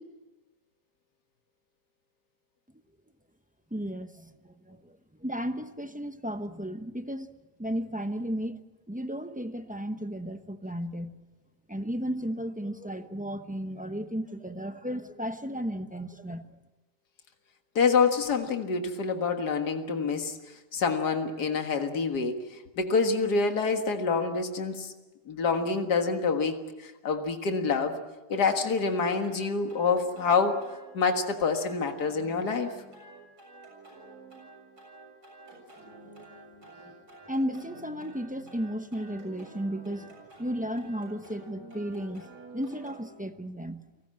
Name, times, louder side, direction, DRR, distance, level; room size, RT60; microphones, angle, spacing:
voice 1, 3.7-7.3 7.6-8.6 8.9-11.2 11.7-16.6 36.6-42.3 42.5-43.8, equal, 10° right, 8 dB, 0.6 m, -34 dB
voice 2, 17.8-20.4 20.7-22.4 22.8-24.9 25.3-26.6 26.8-28.0 28.3-30.6 30.9-32.7, left 5 dB, 70° left, 5 dB, 2.3 m, -26 dB
sound 1, 28.3-43.1, right 2 dB, 75° right, 7.7 m, -49 dB
29.5 x 19.0 x 7.7 m, 1.2 s
omnidirectional pair, 1.8 m